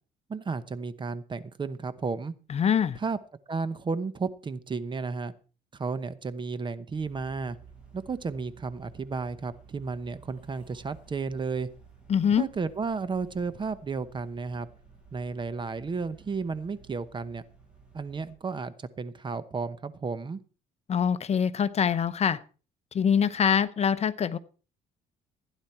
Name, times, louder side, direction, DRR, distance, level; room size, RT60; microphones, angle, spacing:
voice 1, 0.3-2.3 2.9-3.2 3.5-5.3 5.7-7.6 7.9-11.7 12.4-14.7 15.1-17.4 17.9-20.4, right 4 dB, 30° right, 15 dB, 0.9 m, -33 dB
voice 2, 2.5-3.0 12.1-12.4 20.9-22.4 22.9-24.4, left 7 dB, 40° left, 14 dB, 0.9 m, -24 dB
sound 1, 6.9-18.3, right 5 dB, 5° right, 7.5 m, -54 dB
15.5 x 10.0 x 4.4 m, 0.36 s
cardioid pair, 110°, 17 cm